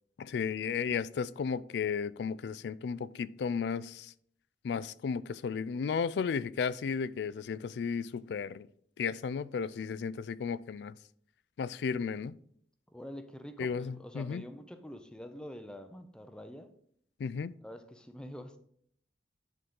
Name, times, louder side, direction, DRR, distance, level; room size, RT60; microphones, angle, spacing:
voice 1, 0.2-4.1 4.6-8.7 9.0-10.9 11.6-12.4 13.6-14.4 17.2-17.5, left 6 dB, 70° left, 0.3 m, -34 dB
voice 2, 12.9-16.7 17.6-18.6, equal, 5° left, 0.5 m, -46 dB
10.0 x 3.9 x 3.7 m
head